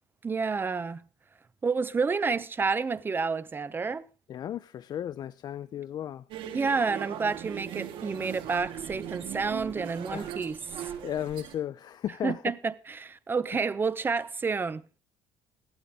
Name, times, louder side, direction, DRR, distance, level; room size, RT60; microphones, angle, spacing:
voice 1, 0.2-1.0 1.6-4.1 6.5-10.6 12.2-14.8, right 4 dB, 20° right, 0.8 m, -29 dB
voice 2, 4.3-6.2 10.1-10.4 10.8-12.4, left 10 dB, 45° left, 0.6 m, -35 dB
sound 1, 6.3-11.6, right 10 dB, 65° right, 3.2 m, -39 dB
16.0 x 12.5 x 3.7 m
cardioid pair, 135°, 9 cm